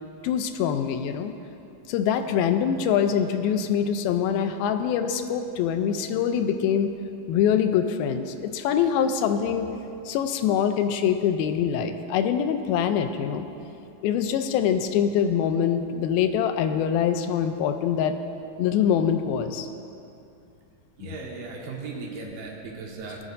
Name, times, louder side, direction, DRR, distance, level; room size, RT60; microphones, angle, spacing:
voice 1, 0.2-1.3 1.9-6.9 7.3-9.7 10.1-13.5 14.0-18.2 18.6-19.7 21.0-21.2, left 8 dB, 85° left, 8 dB, 2.4 m, -24 dB
voice 2, 21.0-23.2, right 3 dB, 75° right, -2 dB, 3.1 m, -37 dB
19.5 x 9.5 x 2.6 m, 2.7 s
omnidirectional pair, 4.3 m